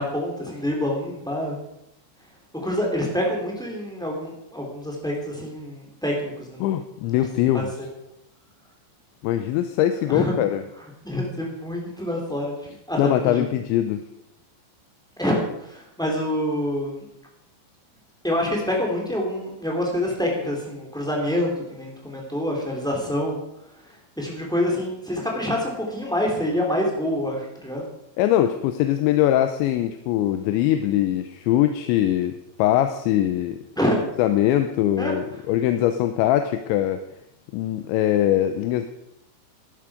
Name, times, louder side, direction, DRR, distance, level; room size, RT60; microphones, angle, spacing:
voice 1, 0.0-1.6 2.5-6.6 7.5-7.6 10.1-10.3 11.0-12.5 12.9-13.5 15.2-17.0 18.2-23.4 24.2-27.9 33.8-34.0 35.0-35.1, left 1 dB, ahead, -2 dB, 2.2 m, -26 dB
voice 2, 6.6-7.7 9.2-10.6 13.0-14.0 28.2-33.6 34.2-37.0 37.5-38.9, left 12 dB, 85° left, 9 dB, 3.0 m, -22 dB
13.5 x 11.5 x 5.0 m, 0.81 s
omnidirectional pair, 5.3 m